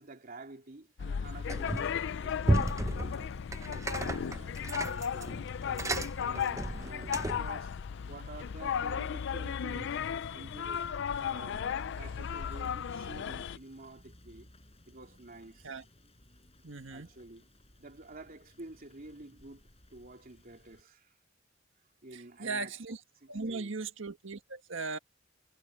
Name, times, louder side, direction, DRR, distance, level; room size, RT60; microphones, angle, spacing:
voice 1, 0.0-3.4 3.6-7.7 8.1-10.9 11.2-11.7 11.9-14.5 14.9-15.7 16.9-17.5 17.8-21.1 22.0-22.7 23.2-23.7, right 2 dB, 50° right, 3.0 m, -50 dB
sound 1, 1.0-13.6, left 7 dB, 65° left, 0.4 m, -35 dB
Rain / Motor vehicle (road), 1.2-20.8, left 1 dB, 30° left, 7.8 m, -59 dB
sound 2, 1.5-2.0 2.4-7.5, right 1 dB, 15° right, 0.7 m, -33 dB
voice 2, 16.6-17.1 22.1-23.0 23.3-25.0, right 3 dB, 75° right, 1.7 m, -38 dB
head